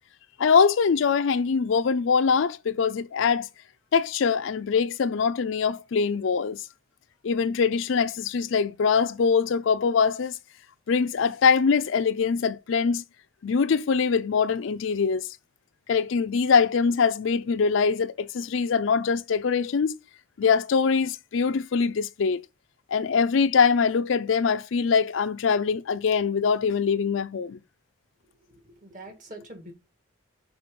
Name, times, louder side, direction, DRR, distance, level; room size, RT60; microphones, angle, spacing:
voice 1, 0.4-3.5 3.9-6.6 7.2-10.4 10.9-13.0 13.4-15.3 15.9-20.0 20.4-22.4 22.9-27.6, left 5 dB, 70° left, 0.4 m, -23 dB
voice 2, 28.2-29.7, right 1 dB, 40° right, 1.8 m, -45 dB
5.9 x 4.0 x 5.2 m
head